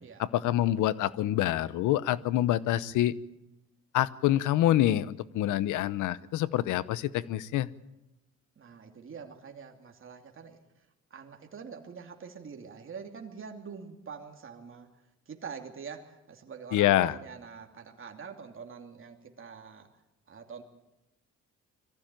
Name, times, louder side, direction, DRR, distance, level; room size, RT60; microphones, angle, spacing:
voice 1, 0.2-3.2 3.9-7.7 16.7-17.2, left 13 dB, 90° left, 18 dB, 0.8 m, -26 dB
voice 2, 8.6-10.6 11.1-14.9 15.3-19.9 20.3-20.6, right 6 dB, 45° right, 3 dB, 2.7 m, -45 dB
22.0 x 14.5 x 9.0 m, 0.95 s
cardioid pair, 90°, 30 cm